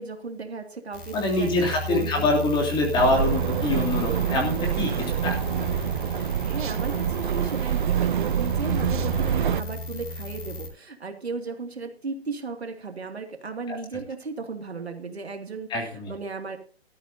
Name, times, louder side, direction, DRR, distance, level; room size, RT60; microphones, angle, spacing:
voice 1, 0.0-2.3 6.4-16.6, right 4 dB, 80° right, 5 dB, 2.6 m, -35 dB
sound 1, 0.9-10.7, left 1 dB, 50° left, 6.4 m, -35 dB
voice 2, 1.1-4.9 5.2-5.4 13.7-13.8 15.7-16.1, left 2 dB, 15° left, 1 dB, 3.1 m, -24 dB
sound 2, 3.0-9.6, right 9 dB, 50° right, 0.7 m, -26 dB
15.5 x 13.5 x 2.8 m, 0.39 s
figure-of-eight pair, 140°, 31 cm